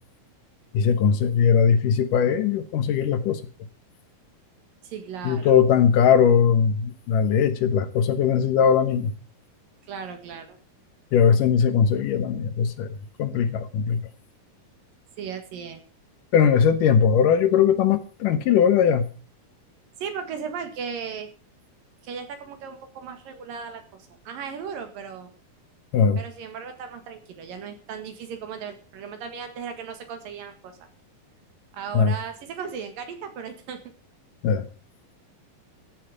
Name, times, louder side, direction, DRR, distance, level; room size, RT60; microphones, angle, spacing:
voice 1, 0.7-3.4 5.2-9.1 11.1-14.1 16.3-19.1 25.9-26.2 31.9-32.1 34.4-34.7, left 7 dB, 70° left, 2.7 m, -20 dB
voice 2, 4.8-5.5 9.9-10.6 15.2-15.8 20.0-21.3 22.0-23.8 24.2-25.3 26.2-30.8 31.7-33.8, right 6 dB, 75° right, 3.4 m, -36 dB
14.5 x 8.6 x 6.6 m
omnidirectional pair, 4.1 m